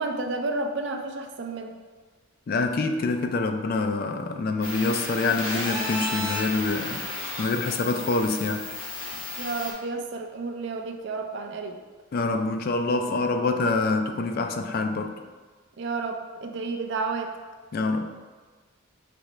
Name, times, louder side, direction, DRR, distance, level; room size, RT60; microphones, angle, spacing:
voice 1, 0.0-1.7 9.1-11.8 15.8-17.3, right 3 dB, 55° right, 4 dB, 0.4 m, -31 dB
voice 2, 2.5-7.0 7.4-8.6 12.1-15.1 17.7-18.1, left 3 dB, 45° left, 6 dB, 0.3 m, -26 dB
sound 1, 4.6-9.7, left 2 dB, 70° left, 1.2 m, -33 dB
5.1 x 3.1 x 3.1 m, 1.4 s
head